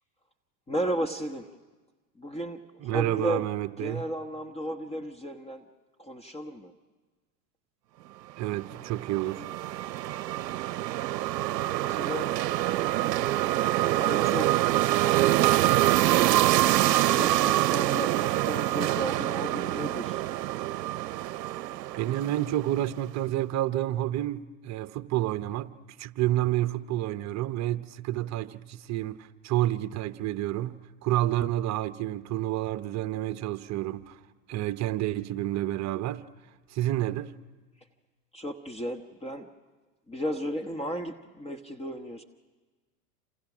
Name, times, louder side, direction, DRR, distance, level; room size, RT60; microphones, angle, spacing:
voice 1, 0.7-1.5 2.2-3.5 3.8-5.6 6.0-6.7 11.8-12.3 14.0-14.5 16.8-20.2 38.3-39.5 40.1-42.2, equal, 10° left, 1.2 m, -34 dB
voice 2, 2.8-4.0 8.4-9.4 21.9-25.7 26.0-34.2 34.5-36.2 36.7-37.3, right 14 dB, 35° right, 0.9 m, -29 dB
sound 1, 8.5-22.9, right 14 dB, 80° right, 0.7 m, -25 dB
28.0 x 28.0 x 6.2 m
hypercardioid pair, 105°, 49 cm